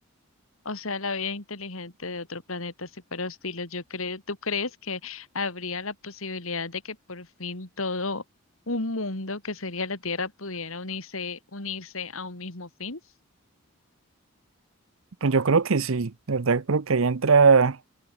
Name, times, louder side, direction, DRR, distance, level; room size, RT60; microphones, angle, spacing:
voice 1, 0.6-8.2 8.7-13.0, left 3 dB, 70° left, 2.9 m, -33 dB
voice 2, 15.2-17.8, right 4 dB, 70° right, 0.7 m, -21 dB
head